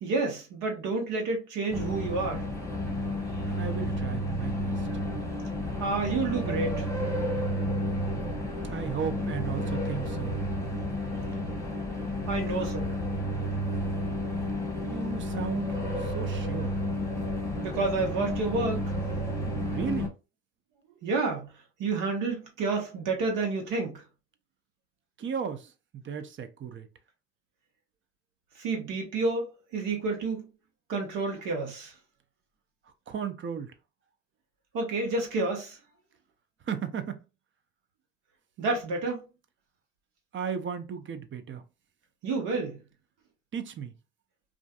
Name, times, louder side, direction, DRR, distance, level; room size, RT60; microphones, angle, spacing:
voice 1, 0.0-2.5 3.4-3.6 5.8-6.9 12.3-12.9 17.6-18.9 21.0-21.5 21.8-24.0 28.6-30.4 30.9-31.9 34.7-35.8 38.6-39.2 42.2-42.8, right 3 dB, 65° right, 1.2 m, -29 dB
sound 1, 1.7-20.1, equal, 10° left, 1.0 m, -31 dB
voice 2, 3.6-4.9 8.7-10.3 14.8-16.7 19.7-20.1 25.2-25.7 26.0-26.9 33.1-33.7 36.7-37.2 40.3-41.6 43.5-43.9, right 7 dB, 35° right, 0.5 m, -35 dB
2.5 x 2.4 x 2.4 m
hypercardioid pair, 65°, 34 cm